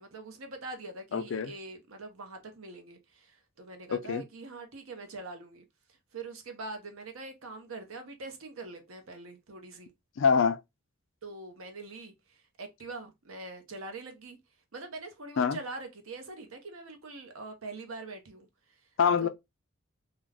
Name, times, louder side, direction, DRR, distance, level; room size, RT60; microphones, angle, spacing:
voice 1, 0.0-5.7 6.1-9.9 11.2-14.4 14.7-18.5 19.2-19.3, right 3 dB, 75° right, 0.7 m, -43 dB
voice 2, 1.1-1.5 3.9-4.2 10.2-10.6 15.4-15.6 19.0-19.3, left 6 dB, 60° left, 0.3 m, -25 dB
2.4 x 2.2 x 3.2 m
head